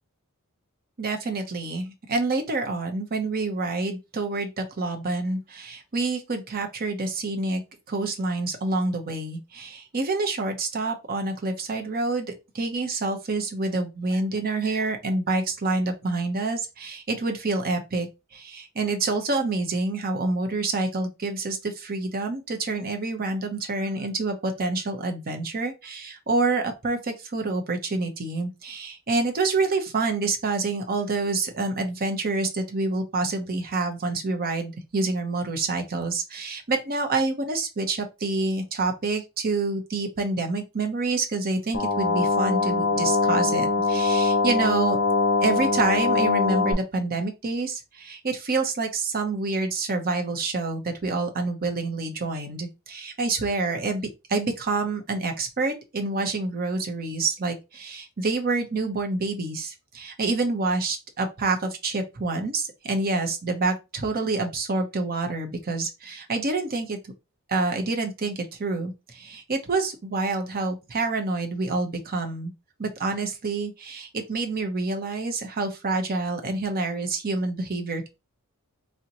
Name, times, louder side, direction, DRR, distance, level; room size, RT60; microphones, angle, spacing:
voice 1, 1.0-7.6 7.9-45.0 45.4-54.0 54.3-67.0 67.5-72.5 72.8-78.1, right 3 dB, 40° right, 0.7 m, -27 dB
sound 1, 41.7-46.7, left 3 dB, 50° left, 0.8 m, -22 dB
3.9 x 2.1 x 2.8 m
head